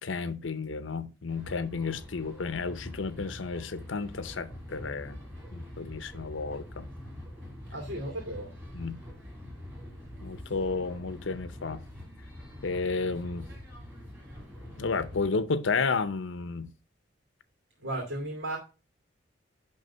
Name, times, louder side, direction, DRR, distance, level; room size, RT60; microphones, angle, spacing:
voice 1, 0.0-5.2 5.5-6.9 8.7-9.0 10.2-11.8 12.6-13.5 14.8-16.7, left 4 dB, 85° left, 0.7 m, -32 dB
sound 1, 1.3-15.3, left 1 dB, 10° right, 2.7 m, -45 dB
voice 2, 7.7-8.5 17.8-18.6, right 1 dB, 75° right, 2.5 m, -34 dB
10.5 x 3.5 x 5.5 m
head